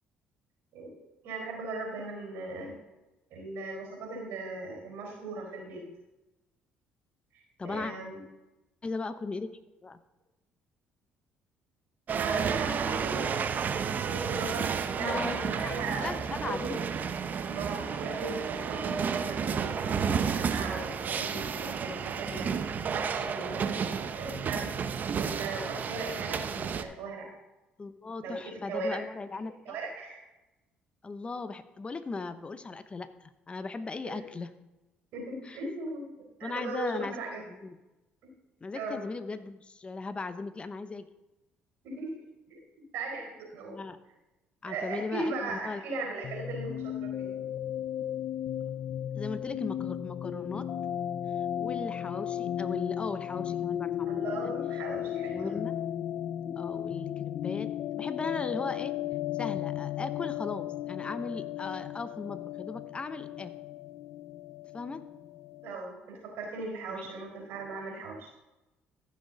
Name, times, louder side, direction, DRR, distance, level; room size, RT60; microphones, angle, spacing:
voice 1, 1.2-2.7 3.3-5.8 7.3-8.2 12.2-13.4 14.0-16.1 16.4-17.0 17.4-24.7 25.2-27.3 28.2-29.0 29.7-30.2 34.0-34.2 35.1-36.1 36.4-37.4 38.7-39.1 41.8-42.1 42.5-42.6 42.9-43.8 44.6-47.4 54.1-55.6 65.6-68.3, right 3 dB, 75° right, 1 dB, 4.3 m, -38 dB
voice 2, 7.6-7.9 8.8-9.5 9.8-10.0 15.0-15.7 16.0-16.8 27.8-29.8 31.0-34.5 35.4-35.6 36.4-37.2 37.5-37.8 38.6-41.1 43.7-44.0 44.6-45.8 49.2-50.7 51.6-54.5 55.3-55.7 56.6-58.9 59.3-63.5 64.7-65.0 66.9-67.0, left 3 dB, 30° left, 12 dB, 0.8 m, -37 dB
sound 1, 12.1-26.8, right 6 dB, 50° right, 0.7 m, -31 dB
sound 2, 46.2-65.7, left 11 dB, 60° left, 0.4 m, -35 dB
14.5 x 6.5 x 4.0 m, 1.0 s
supercardioid pair, 75°, 4 cm